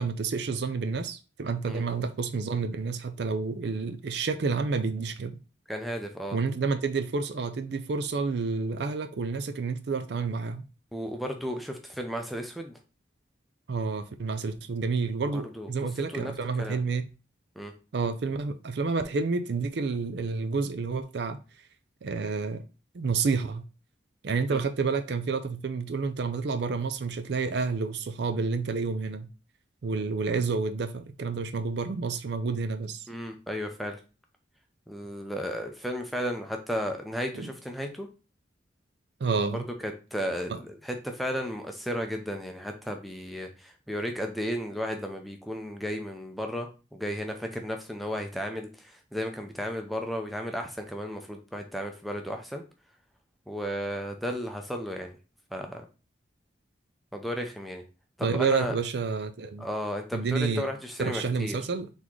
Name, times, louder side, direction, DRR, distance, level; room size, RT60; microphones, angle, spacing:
voice 1, 0.0-5.4 6.3-10.6 13.7-17.1 17.9-21.4 22.0-22.6 22.9-23.6 24.2-29.3 29.8-33.1 37.3-37.5 39.2-39.6 40.5-40.6 58.2-59.7 60.1-60.7 61.0-61.9, right 4 dB, 60° right, 0.4 m, -29 dB
voice 2, 5.7-6.4 10.9-12.8 15.3-15.7 16.1-16.3 16.6-16.8 17.6-17.7 24.5-24.6 33.1-34.0 34.9-38.1 39.5-52.6 53.5-55.2 55.5-55.8 57.1-57.8 58.2-58.7 59.6-61.6, equal, ahead, 0.5 m, -34 dB
4.1 x 3.5 x 3.0 m
head